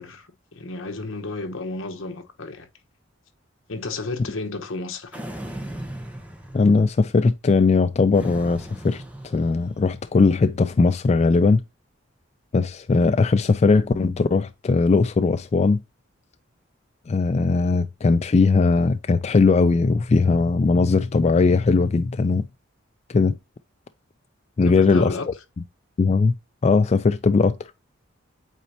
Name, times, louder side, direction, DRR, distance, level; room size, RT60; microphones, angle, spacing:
voice 1, 0.0-2.7 3.7-5.2 24.6-25.3, left 3 dB, 75° left, 1.1 m, -32 dB
Dragon Moan, 5.1-7.0 8.1-9.9, right 1 dB, 5° right, 1.0 m, -37 dB
voice 2, 6.5-11.6 12.5-15.8 17.1-22.4 23.1-23.4 24.6-25.2 26.0-26.3 26.6-27.6, left 4 dB, 35° left, 0.3 m, -19 dB
8.3 x 4.1 x 2.7 m
head